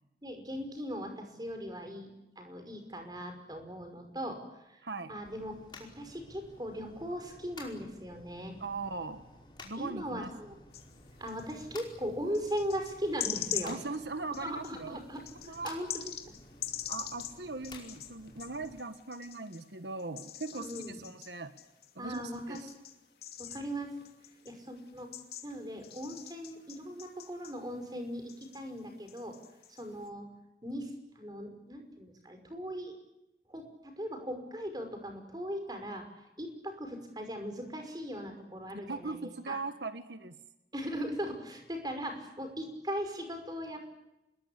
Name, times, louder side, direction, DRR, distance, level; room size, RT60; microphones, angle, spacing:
voice 1, 0.2-2.1 2.4-4.4 4.7-4.8 5.1-5.5 5.8-8.6 9.8-10.6 11.2-13.8 14.4-16.4 20.5-21.0 22.0-22.7 23.4-23.9 24.4-25.1 25.4-29.4 29.7-30.3 30.6-33.0 33.5-36.0 36.4-39.2 39.5-39.6 40.7-43.8, equal, 25° right, 5 dB, 5.5 m, -39 dB
voice 2, 4.8-5.1 8.6-9.2 9.6-10.3 13.6-15.0 15.5-15.7 16.9-21.5 21.9-22.7 38.9-40.4, right 3 dB, 85° right, 10 dB, 1.5 m, -40 dB
sound 1, 5.2-18.8, left 3 dB, 25° left, 5.0 m, -54 dB
sound 2, 10.7-11.7 12.3-19.6 20.0-28.0 28.3-30.1, left 11 dB, 65° left, 2.7 m, -43 dB
27.0 x 21.5 x 8.6 m, 0.92 s
head